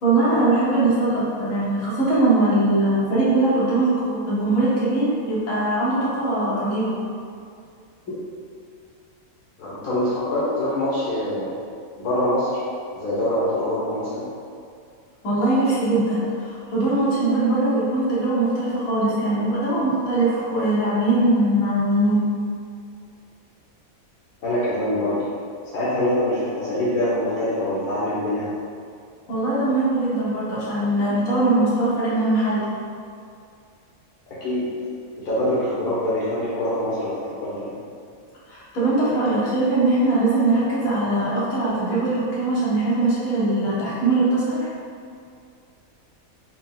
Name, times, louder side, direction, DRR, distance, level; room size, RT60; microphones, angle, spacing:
voice 1, 0.0-6.9 15.2-22.3 29.3-32.7 38.5-44.7, right 2 dB, 70° left, -9 dB, 1.5 m, -21 dB
voice 2, 9.6-11.5 12.0-12.6 12.9-14.3 24.4-25.3 25.7-28.5 34.4-34.7 35.2-37.7, left 1 dB, 85° left, -9 dB, 1.3 m, -24 dB
4.3 x 2.0 x 3.8 m, 2.3 s
omnidirectional pair, 1.5 m